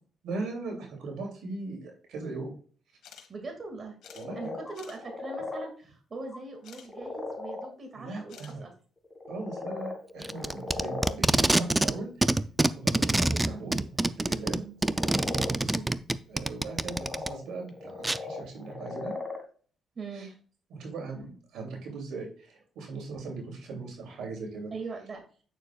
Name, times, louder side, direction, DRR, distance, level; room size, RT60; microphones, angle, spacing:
voice 1, 0.2-2.5 4.1-4.5 7.9-8.6 9.3-12.3 12.8-14.6 15.2-15.8 16.3-19.1 20.1-20.3 20.7-24.7, right 3 dB, 80° right, 2 dB, 2.7 m, -39 dB
sound 1, 3.0-3.3 3.6-3.7 4.0-4.3 4.7-5.0 6.6-6.9 8.3-8.5, left 8 dB, 80° left, 1.4 m, -50 dB
voice 2, 3.3-4.0 4.4-8.7 13.5-13.6 14.5-14.7 20.0-20.3 24.7-25.2, right 3 dB, 40° right, 3 dB, 2.1 m, -41 dB
sound 2, 4.0-5.7 6.3-6.4 6.8-7.7 9.0-11.2 14.8-15.5 16.6-19.4, left 3 dB, 20° left, 1.7 m, -38 dB
Packing tape duct tape, 10.2-12.0 12.2-17.3 18.0-18.2, right 2 dB, 15° right, 0.4 m, -25 dB
9.0 x 6.6 x 2.4 m, 0.41 s
cardioid pair, 90°, 0 cm